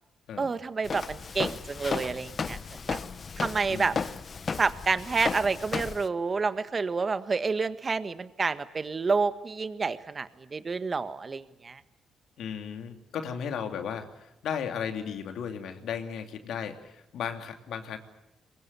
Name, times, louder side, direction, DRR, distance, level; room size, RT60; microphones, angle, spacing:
voice 1, 0.4-2.6 2.9-3.0 3.4-3.9 4.6-11.8, right 4 dB, 35° right, 12 dB, 1.5 m, -29 dB
Walk footsteps, 0.8-6.1, left 5 dB, 40° left, 1.0 m, -34 dB
voice 2, 12.4-18.0, left 7 dB, 75° left, 6 dB, 2.7 m, -35 dB
22.5 x 21.5 x 9.8 m, 0.88 s
cardioid pair, 90°, 0 cm